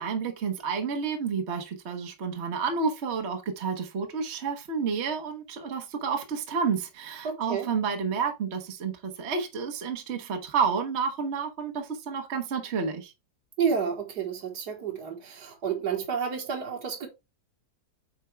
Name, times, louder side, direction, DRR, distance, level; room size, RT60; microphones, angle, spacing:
voice 1, 0.0-13.1, right 5 dB, 45° right, 1.2 m, -30 dB
voice 2, 7.2-7.7 13.6-17.1, right 6 dB, 80° right, 2.0 m, -30 dB
8.5 x 4.4 x 3.3 m
omnidirectional pair, 1.7 m